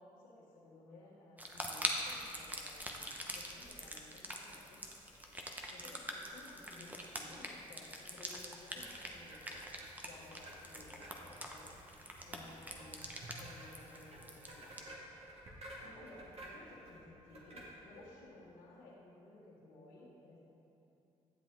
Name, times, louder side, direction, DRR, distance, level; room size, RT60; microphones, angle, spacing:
voice 1, 0.0-4.8 5.7-9.5 10.0-11.7 12.2-14.9 15.8-20.4, left 2 dB, 85° left, -6 dB, 1.5 m, -57 dB
sound 1, 1.4-14.8, equal, 10° right, 1.2 m, -44 dB
sound 2, 8.8-18.1, right 1 dB, 50° right, 2.1 m, -54 dB
11.0 x 7.5 x 3.8 m, 2.9 s
supercardioid pair, 55°, 14 cm